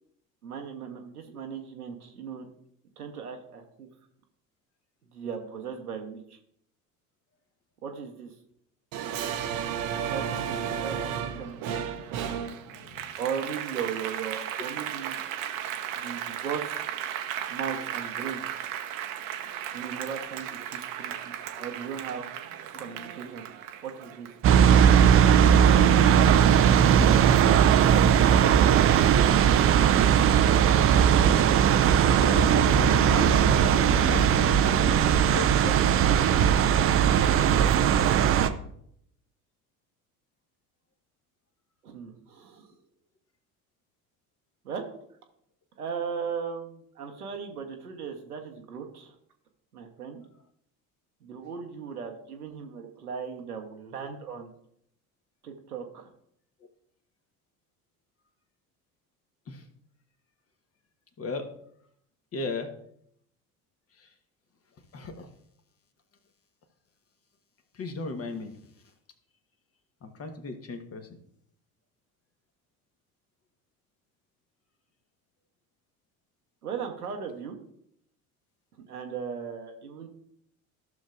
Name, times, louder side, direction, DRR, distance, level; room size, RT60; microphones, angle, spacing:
voice 1, 0.4-2.5 3.0-3.9 5.1-6.4 7.8-8.3 10.1-11.8 13.2-15.2 16.0-16.8 17.5-18.4 19.7-22.3 22.8-23.4 23.8-24.3 41.8-42.7 44.6-44.8 45.8-49.1 49.7-50.2 51.2-54.5 55.4-56.1 76.6-77.6 78.9-80.1, right 6 dB, 80° right, 3 dB, 1.2 m, -37 dB
Applause, 8.9-25.7 26.1-27.3, right 9 dB, 50° right, 0.9 m, -35 dB
voice 2, 12.7-13.1 26.8-27.2 28.9-29.1 32.2-33.3 33.7-35.0 35.3-36.3 59.5-59.6 61.2-61.5 62.3-62.7 64.0-64.1 64.9-65.3 67.7-68.5 70.0-71.1, left 3 dB, 30° left, 6 dB, 1.3 m, -36 dB
sound 1, 24.4-38.5, right 8 dB, 30° right, 0.5 m, -19 dB
14.0 x 6.4 x 2.5 m, 0.71 s
figure-of-eight pair, 60°, 44 cm